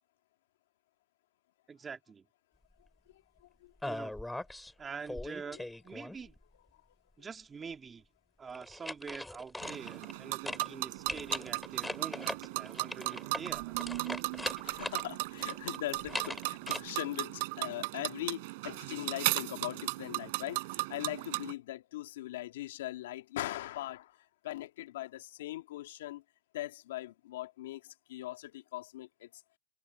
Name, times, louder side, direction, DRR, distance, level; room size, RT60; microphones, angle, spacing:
voice 1, 1.7-2.3 3.8-4.1 4.8-6.3 7.2-8.0 8.4-14.0, right 5 dB, 15° right, 2.3 m, -45 dB
voice 2, 3.6-4.0 5.5-5.6 14.4-26.2 26.5-29.3, left 15 dB, 65° left, 1.8 m, -41 dB
sound 1, 3.8-4.7 5.1-6.4 8.5-10.2 10.5-10.7 11.1-15.0 15.4-16.8, left 1 dB, 5° left, 3.9 m, -40 dB
sound 2, 9.6-21.5, right 24 dB, 50° right, 4.1 m, -37 dB
supercardioid pair, 145°, 0 cm